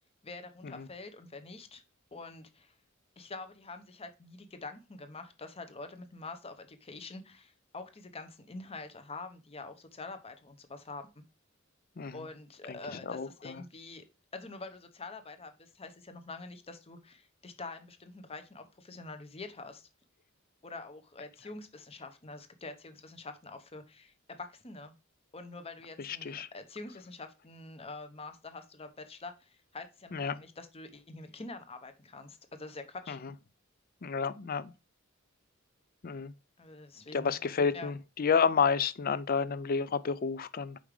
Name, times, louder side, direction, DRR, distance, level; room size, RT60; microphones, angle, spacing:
voice 1, 0.2-1.8 2.1-2.8 3.2-11.1 12.1-14.0 14.3-19.9 20.6-24.9 25.3-33.2 36.6-37.3 37.7-37.9, left 3 dB, 30° left, 0.8 m, -46 dB
voice 2, 13.1-13.6 26.0-26.5 30.1-30.4 33.1-33.2 34.0-34.7 36.0-36.3 37.1-40.8, left 5 dB, 45° left, 0.5 m, -30 dB
5.3 x 4.9 x 4.8 m
head